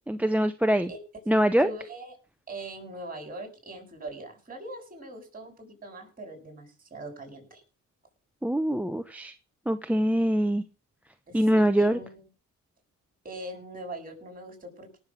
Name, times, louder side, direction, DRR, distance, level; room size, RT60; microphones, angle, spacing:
voice 1, 0.1-0.9 1.3-1.7 8.4-9.3 9.7-10.6 11.3-12.0, equal, 5° right, 12 dB, 0.8 m, -23 dB
voice 2, 1.6-2.1 2.5-7.6 11.3-12.2 13.2-15.0, right 1 dB, 30° right, 4 dB, 7.6 m, -41 dB
18.5 x 7.5 x 6.3 m, 0.36 s
cardioid pair, 90°, 30 cm